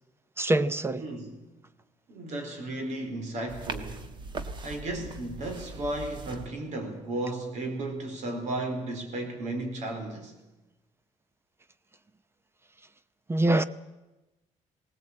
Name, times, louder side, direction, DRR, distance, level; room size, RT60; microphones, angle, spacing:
voice 1, 0.4-1.0 13.3-13.6, right 1 dB, 20° right, 0.7 m, -24 dB
voice 2, 1.0-1.5 2.1-4.1 4.6-10.4, right 2 dB, 65° right, 4.4 m, -34 dB
sound 1, 3.5-6.5, right 3 dB, 35° right, 1.5 m, -40 dB
19.0 x 19.0 x 8.7 m
cardioid pair, 155°, 13 cm